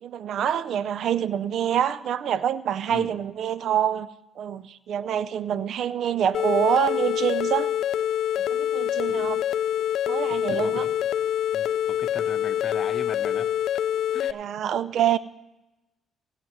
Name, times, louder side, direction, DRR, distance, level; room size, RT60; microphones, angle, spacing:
voice 1, 0.0-4.1 4.4-7.7 8.3-9.4 10.1-10.9 14.3-15.2, right 9 dB, 70° right, 16 dB, 0.5 m, -26 dB
sound 1, 6.3-14.3, left 10 dB, 75° left, 0.3 m, -26 dB
voice 2, 10.5-10.9 11.5-13.5 14.1-14.3, left 5 dB, 45° left, 8 dB, 1.0 m, -38 dB
21.5 x 8.9 x 3.2 m, 0.99 s
cardioid pair, 90°, 0 cm